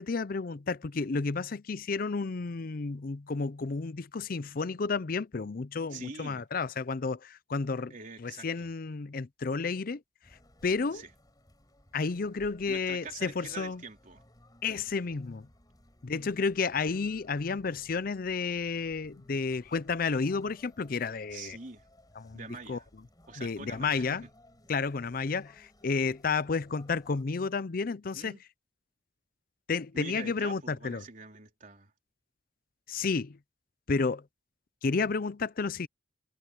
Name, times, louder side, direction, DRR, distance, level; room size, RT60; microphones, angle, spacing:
voice 1, 0.0-10.0 10.6-11.0 11.9-13.8 14.6-15.5 16.0-21.6 22.2-22.4 22.7-22.8 23.4-24.2 24.7-28.4 29.7-31.0 32.9-33.4 33.9-34.2 34.8-35.9, left 4 dB, 55° left, 0.6 m, -31 dB
voice 2, 5.9-6.4 7.9-8.7 10.9-11.1 12.7-14.2 16.1-16.4 21.3-21.9 22.3-22.8 23.3-24.2 28.1-28.4 29.9-31.9, right 4 dB, 45° right, 3.7 m, -45 dB
sound 1, 10.2-27.2, left 1 dB, 20° left, 5.1 m, -60 dB
head